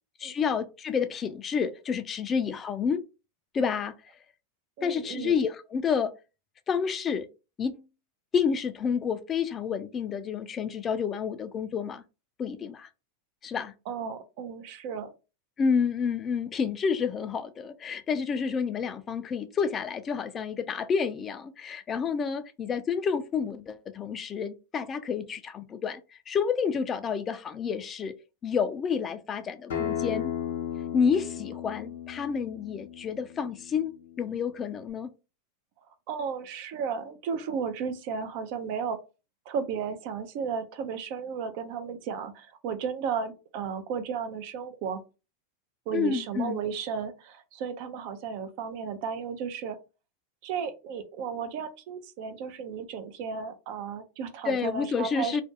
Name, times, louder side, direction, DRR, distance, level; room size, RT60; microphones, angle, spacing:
voice 1, 0.2-3.0 3.5-3.9 4.8-6.1 6.7-7.3 7.6-7.8 8.3-12.0 12.4-12.9 13.4-13.7 15.6-26.0 26.3-28.1 28.4-30.3 30.9-35.1 45.9-46.6 54.5-55.4, left 6 dB, 30° left, 0.3 m, -29 dB
voice 2, 4.8-5.4 13.9-15.1 35.8-39.0 39.5-45.0 45.9-49.8 50.4-55.4, right 6 dB, 60° right, 0.5 m, -34 dB
Acoustic guitar, 29.7-34.9, left 9 dB, 80° left, 0.6 m, -36 dB
2.5 x 2.2 x 2.6 m
hypercardioid pair, 110°, 0 cm